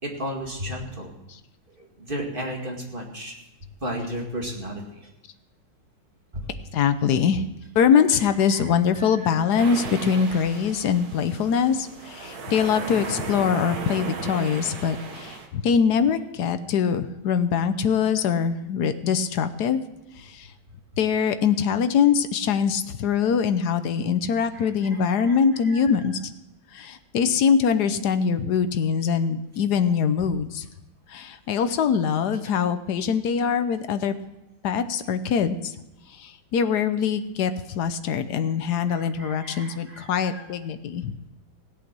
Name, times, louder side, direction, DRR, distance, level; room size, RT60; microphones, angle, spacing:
voice 1, 0.0-1.1 1.8-3.4 3.8-5.1 6.3-6.5 8.1-9.5 24.5-25.4 25.6-25.8 38.9-40.5, equal, 25° right, 0 dB, 2.3 m, -35 dB
voice 2, 6.7-7.4 7.7-19.8 20.2-20.5 21.0-26.2 26.7-30.7 31.1-34.1 34.6-35.7 36.1-41.1, left 7 dB, 65° left, 10 dB, 1.3 m, -23 dB
sound 1, 9.6-15.5, right 4 dB, 55° right, 1.8 m, -35 dB
17.0 x 8.4 x 6.1 m, 0.89 s
omnidirectional pair, 2.1 m